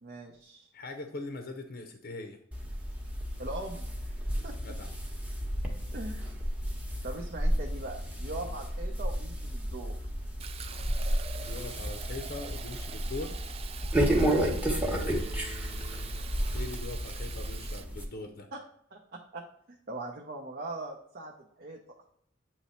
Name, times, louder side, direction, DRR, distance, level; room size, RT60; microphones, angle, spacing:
voice 1, 0.0-0.7 3.4-3.9 4.4-4.6 5.9-6.2 7.0-10.0 14.1-14.5 18.5-18.6 18.9-21.8, right 2 dB, 50° right, 1 dB, 0.7 m, -41 dB
voice 2, 0.7-2.4 4.3-4.9 8.4-8.5 11.4-13.4 14.8-16.2 16.5-18.5, left 2 dB, 45° left, 5 dB, 0.6 m, -42 dB
sound 1, 2.5-18.0, equal, 10° right, 0.9 m, -32 dB
Fill (with liquid), 10.4-17.8, right 7 dB, 30° right, 0.3 m, -45 dB
8.1 x 3.1 x 4.3 m, 0.67 s
head